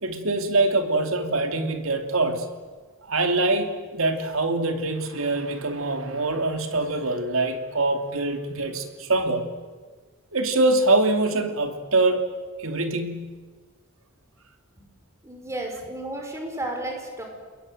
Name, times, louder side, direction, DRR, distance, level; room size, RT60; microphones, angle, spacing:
voice 1, 0.0-2.5 3.1-9.5 10.3-12.2 12.6-13.3, right 2 dB, 70° right, 6 dB, 2.9 m, -24 dB
voice 2, 15.2-17.2, right 1 dB, 15° right, 2 dB, 5.6 m, -32 dB
29.5 x 21.5 x 7.9 m, 1.4 s
head